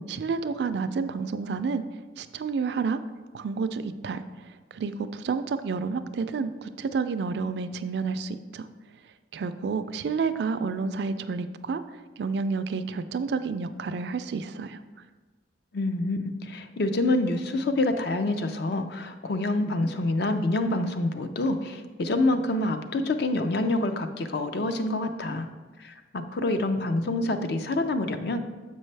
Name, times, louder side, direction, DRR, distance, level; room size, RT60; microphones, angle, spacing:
voice 1, 0.1-1.8 2.2-3.0 3.3-8.7 9.3-11.8 12.2-14.8, right 5 dB, 60° right, 11 dB, 0.3 m, -30 dB
voice 2, 15.7-25.5 25.8-28.4, left 2 dB, 60° left, 8 dB, 0.5 m, -27 dB
7.3 x 5.4 x 3.3 m, 1.3 s
head